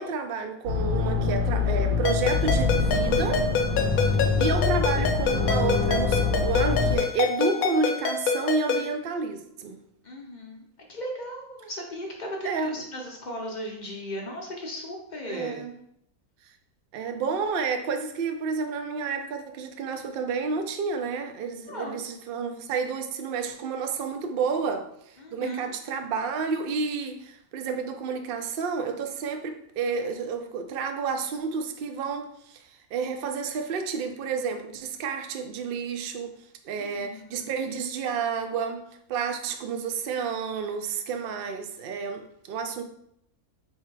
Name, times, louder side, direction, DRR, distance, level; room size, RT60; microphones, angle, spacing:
voice 1, 0.0-3.5 4.4-9.8 12.4-12.8 15.3-15.7 16.9-24.9 25.3-32.6 32.9-36.3 36.6-38.8 39.1-42.8, right 5 dB, 85° right, 0.5 m, -30 dB
sound 1, 0.6-7.0, left 4 dB, 65° right, 1.2 m, -25 dB
Ringtone, 2.0-8.9, left 5 dB, 75° left, 1.0 m, -27 dB
voice 2, 3.7-4.4 10.0-10.6 10.9-15.6 21.7-22.0 25.2-25.7 36.8-37.5, equal, 50° left, 0.5 m, -37 dB
3.4 x 2.7 x 4.5 m
omnidirectional pair, 1.5 m